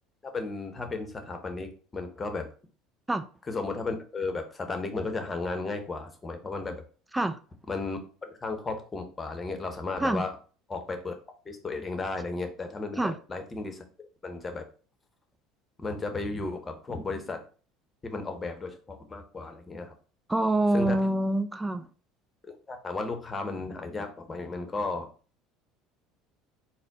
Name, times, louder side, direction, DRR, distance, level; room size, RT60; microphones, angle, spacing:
voice 1, 0.2-2.5 3.5-6.8 7.7-10.3 10.7-11.1 11.5-14.6 15.8-17.4 18.1-19.9 20.7-21.0 22.5-25.1, left 3 dB, 25° left, 1.0 m, -34 dB
voice 2, 20.3-21.9, right 1 dB, 10° right, 0.4 m, -26 dB
4.1 x 2.2 x 4.1 m
hypercardioid pair, 70°, 0 cm